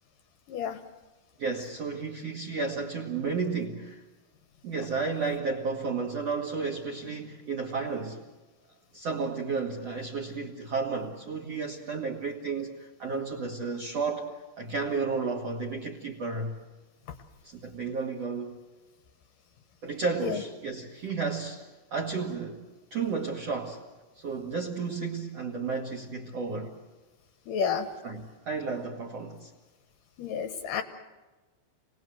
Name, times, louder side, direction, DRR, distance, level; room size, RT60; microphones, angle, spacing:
voice 1, 0.5-0.8 20.2-20.4 27.5-27.9 30.2-30.8, left 7 dB, 70° left, 9 dB, 2.1 m, -30 dB
voice 2, 1.4-4.0 4.6-8.2 8.9-14.3 14.6-16.5 17.4-18.5 19.8-22.6 22.9-23.8 24.2-26.7 28.0-29.5, right 4 dB, 55° right, -1 dB, 1.9 m, -32 dB
29.0 x 19.0 x 7.7 m, 1.2 s
omnidirectional pair, 5.1 m